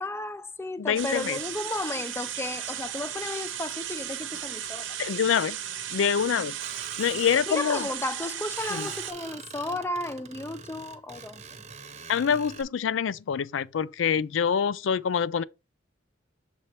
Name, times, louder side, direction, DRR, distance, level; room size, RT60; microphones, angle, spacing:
voice 1, 0.0-5.0 7.5-11.6, left 2 dB, 15° left, 0.4 m, -34 dB
voice 2, 0.8-1.4 5.0-5.6 5.9-6.5 7.0-7.9 8.7-8.9 12.1-15.4, left 7 dB, 75° left, 0.4 m, -26 dB
sound 1, 0.9-9.1, right 10 dB, 80° right, 0.9 m, -35 dB
Screech, 6.6-7.4 8.5-12.6, right 5 dB, 35° right, 0.8 m, -44 dB
6.8 x 4.4 x 3.1 m
head